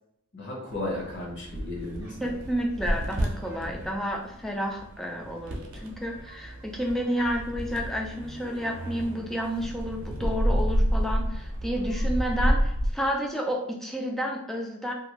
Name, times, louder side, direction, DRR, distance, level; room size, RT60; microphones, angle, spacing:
voice 1, 0.3-2.4, left 2 dB, 55° left, -2 dB, 0.9 m, -35 dB
sound 1, 0.7-12.9, equal, 65° right, 0.6 m, -30 dB
voice 2, 2.2-14.9, equal, ahead, 0 dB, 0.3 m, -30 dB
2.5 x 2.3 x 3.0 m, 0.76 s
head